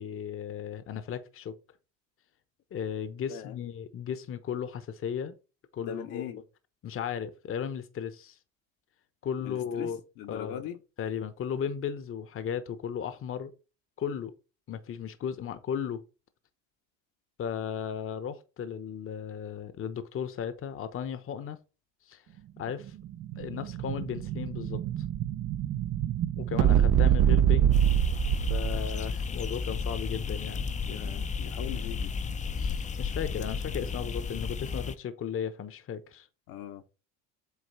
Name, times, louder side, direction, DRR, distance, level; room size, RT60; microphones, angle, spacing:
voice 1, 0.0-1.6 2.7-5.3 5.7-6.2 6.8-8.4 9.2-10.0 10.3-10.6 11.0-13.5 14.0-14.3 14.7-16.0 17.4-21.6 22.1-22.2 22.6-22.9 23.4-24.8 26.4-27.8 28.5-30.7 32.6-36.3, left 8 dB, 35° left, 0.9 m, -35 dB
voice 2, 5.8-6.4 9.4-9.9 10.2-10.8 27.9-28.0 30.9-32.1 33.8-34.1 36.5-36.8, left 10 dB, 70° left, 1.3 m, -40 dB
Explosion, 22.8-28.9, right 10 dB, 45° right, 0.6 m, -25 dB
sound 1, 27.7-34.9, left 5 dB, 20° left, 0.6 m, -33 dB
8.2 x 3.1 x 4.3 m
supercardioid pair, 95°, 35 cm